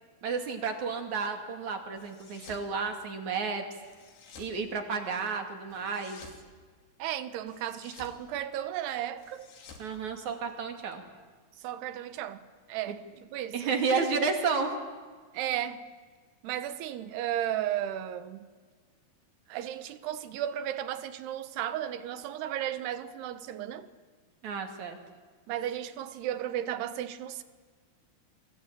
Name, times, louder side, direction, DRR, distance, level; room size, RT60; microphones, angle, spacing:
voice 1, 0.2-3.6 4.4-6.2 9.8-11.0 13.5-14.7 24.4-25.0, right 5 dB, 50° right, 3.6 m, -31 dB
sound 1, 2.0-2.7 3.8-4.6 5.7-6.4 7.5-8.2 9.2-10.7, left 5 dB, 85° left, 5.2 m, -52 dB
voice 2, 7.0-9.5 11.6-12.4 12.7-14.1 15.3-15.8 16.4-18.5 19.5-23.9 25.5-27.4, right 11 dB, 90° right, 3.2 m, -34 dB
28.5 x 22.5 x 9.0 m
omnidirectional pair, 4.6 m